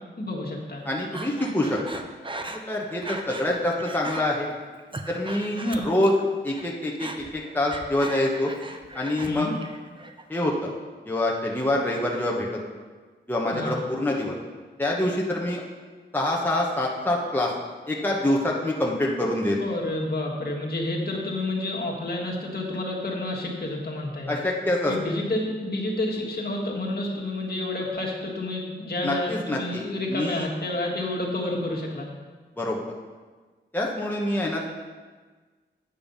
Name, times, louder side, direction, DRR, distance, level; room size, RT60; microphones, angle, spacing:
voice 1, 0.2-0.8 5.5-5.9 9.3-9.5 13.5-13.8 19.6-24.4 24.9-32.1, left 1 dB, 55° left, -2 dB, 1.7 m, -29 dB
voice 2, 0.8-1.8 2.5-4.5 5.1-6.1 6.4-8.5 8.9-9.5 10.3-10.7 11.0-12.6 13.3-14.3 14.8-15.6 16.1-17.5 17.9-19.6 24.3-24.9 29.0-30.5 32.6-32.8 33.7-34.8, left 1 dB, 10° left, -3 dB, 1.0 m, -26 dB
Breathing, 1.1-3.5 3.8-4.2 4.7-6.2 6.5-9.3 9.6-10.2, right 2 dB, 25° right, 0.7 m, -38 dB
8.9 x 5.5 x 5.5 m, 1.4 s
wide cardioid pair, 85°, 19 cm